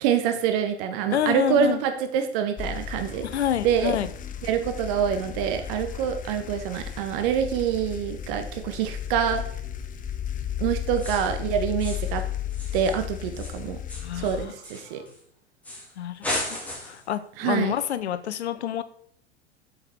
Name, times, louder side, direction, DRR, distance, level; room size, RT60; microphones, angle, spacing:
voice 1, 0.0-3.2 3.6-4.0 4.4-9.4 10.6-12.2 12.7-13.8 14.1-15.0 17.4-17.7, right 8 dB, 55° right, 7 dB, 1.3 m, -26 dB
voice 2, 1.1-1.8 3.2-4.1 14.0-14.5 14.8-15.0 16.0-18.8, left 10 dB, 75° left, 14 dB, 0.8 m, -28 dB
sound 1, 2.6-14.5, left 9 dB, 25° left, 0.8 m, -34 dB
sound 2, 10.9-11.4 11.8-12.2 12.5-15.2 15.6-15.9 16.2-17.1, left 1 dB, 5° left, 3.1 m, -35 dB
8.0 x 7.0 x 4.1 m, 0.64 s
figure-of-eight pair, 85°, 34 cm